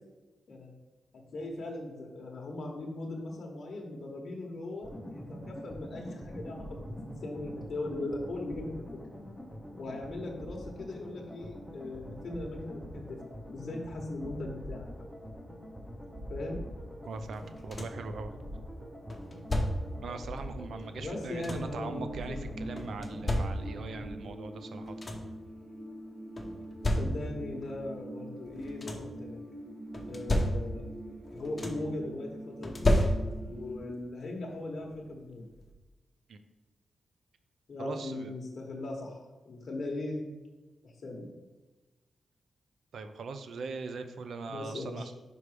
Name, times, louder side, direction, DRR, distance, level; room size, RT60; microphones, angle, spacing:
voice 1, 1.3-8.7 9.7-13.2 13.5-14.9 16.3-16.6 20.9-22.7 26.9-29.4 30.1-30.8 31.3-32.8 33.5-35.4 37.7-40.2 40.8-41.3 44.5-45.1, left 2 dB, 60° left, 0 dB, 1.0 m, -39 dB
sound 1, 4.8-24.1, equal, ahead, 0.9 m, -44 dB
voice 2, 17.1-18.3 20.0-24.9 36.3-36.4 37.8-38.3 42.9-45.1, right 4 dB, 75° right, 9 dB, 0.5 m, -41 dB
sound 2, 17.3-18.1 19.1-20.1 21.0-21.9 22.8-24.0 24.5-24.6 24.8-25.4 26.4-27.5 28.5-29.2 29.9-31.0 31.2-32.0 32.6-33.6 34.9-35.0 35.5-35.7, left 1 dB, 30° left, 0.9 m, -32 dB
sound 3, 21.9-33.8, right 1 dB, 30° right, 1.0 m, -44 dB
5.2 x 4.9 x 4.9 m, 1.2 s
cardioid pair, 85°, 0 cm